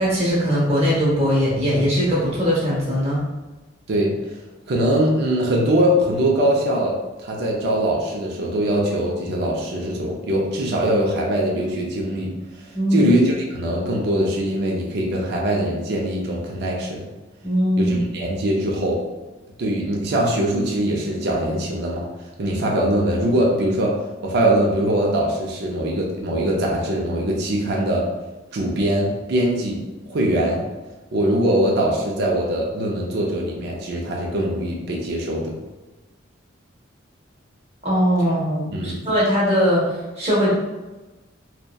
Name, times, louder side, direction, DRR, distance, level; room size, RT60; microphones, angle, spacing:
voice 1, 0.0-3.2 12.7-13.1 17.4-18.0 37.8-39.8 40.2-40.5, equal, 35° right, -7 dB, 0.9 m, -20 dB
voice 2, 4.7-6.9 7.2-17.0 17.8-19.0 19.6-22.1 22.4-23.9 24.2-28.1 28.5-29.8 30.1-30.6 31.1-35.6 38.7-39.0, right 1 dB, 60° right, -2 dB, 0.4 m, -22 dB
2.6 x 2.1 x 2.2 m, 1.1 s
head